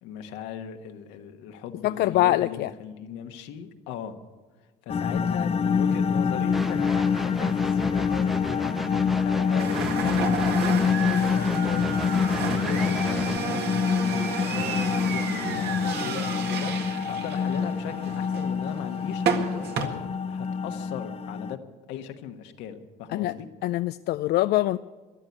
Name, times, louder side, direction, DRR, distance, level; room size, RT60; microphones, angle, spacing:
voice 1, 0.0-4.1 4.8-10.3 10.8-21.6 21.9-23.5, left 8 dB, 75° left, 6 dB, 1.4 m, -39 dB
voice 2, 1.8-2.7 23.1-23.3 23.6-24.8, left 15 dB, 60° left, 13 dB, 0.4 m, -23 dB
sound 1, 4.9-21.5, left 6 dB, 35° left, 0.8 m, -26 dB
sound 2, 6.5-13.4, equal, ahead, 0.5 m, -36 dB
sound 3, 9.6-19.9, right 6 dB, 60° right, 1.8 m, -32 dB
14.0 x 11.5 x 8.4 m, 1.3 s
supercardioid pair, 75°, 19 cm